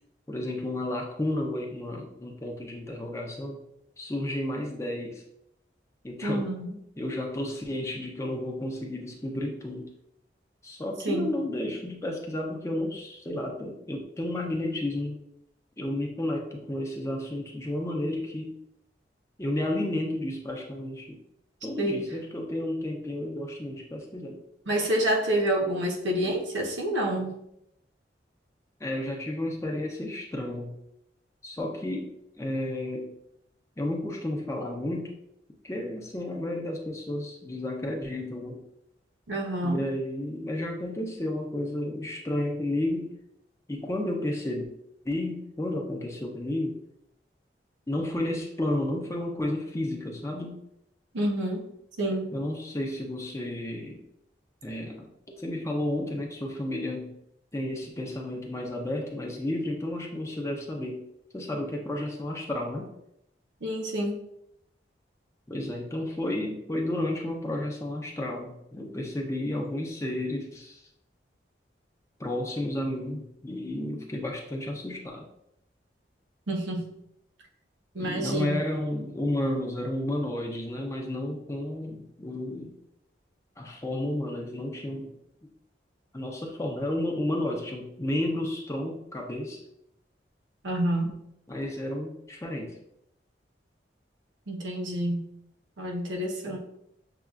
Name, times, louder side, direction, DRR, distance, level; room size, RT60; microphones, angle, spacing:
voice 1, 0.3-3.6 4.0-5.2 6.0-6.5 7.0-9.9 10.6-15.2 15.8-18.5 19.4-21.2 21.6-24.4 28.8-30.7 31.4-32.1 32.4-33.1 33.8-35.1 35.6-38.6 39.6-43.1 43.7-44.7 45.0-46.8 47.9-50.6 52.3-54.0 54.6-57.1 57.5-61.0 61.3-62.9 65.5-70.8 72.2-75.3 78.0-82.7 83.6-85.1 86.1-89.6 91.5-92.7 96.5-96.6, left 1 dB, 15° left, 0 dB, 0.5 m, -32 dB
voice 2, 6.2-6.7 11.0-11.3 21.8-22.0 24.7-27.4 39.3-39.8 51.1-51.7 52.0-52.3 63.6-64.2 76.5-76.8 77.9-78.6 90.6-91.1 94.5-95.2 95.8-96.6, right 1 dB, 90° right, 0 dB, 0.8 m, -28 dB
6.6 x 2.3 x 2.4 m, 0.78 s
head